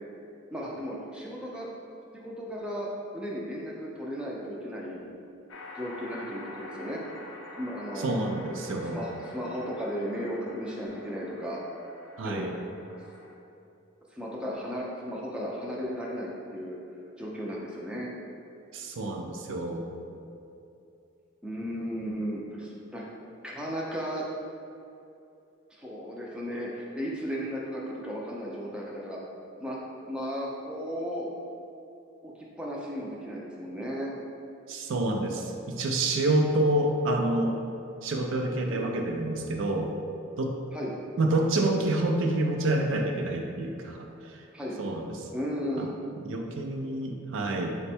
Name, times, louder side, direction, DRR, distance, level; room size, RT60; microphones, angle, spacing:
voice 1, 0.5-1.7 2.1-2.9 3.1-5.0 5.8-7.0 7.5-8.2 8.8-11.6 12.2-12.5 14.1-16.8 17.2-18.1 21.4-23.0 23.4-24.3 25.7-29.2 29.6-29.8 30.1-31.3 32.2-32.3 32.6-34.1 38.7-38.8 40.7-40.9 44.5-44.8 45.3-45.9, equal, 5° right, -4 dB, 0.4 m, -35 dB
sound 1, 5.5-13.3, left 2 dB, 65° left, 0.4 m, -47 dB
voice 2, 8.0-9.0 12.2-12.5 18.7-19.9 34.7-37.5 38.0-39.9 40.4-40.6 41.2-44.4 44.8-45.3 45.8-45.9 46.2-47.8, right 2 dB, 65° right, 2 dB, 0.4 m, -28 dB
4.2 x 2.2 x 4.2 m, 2.7 s
head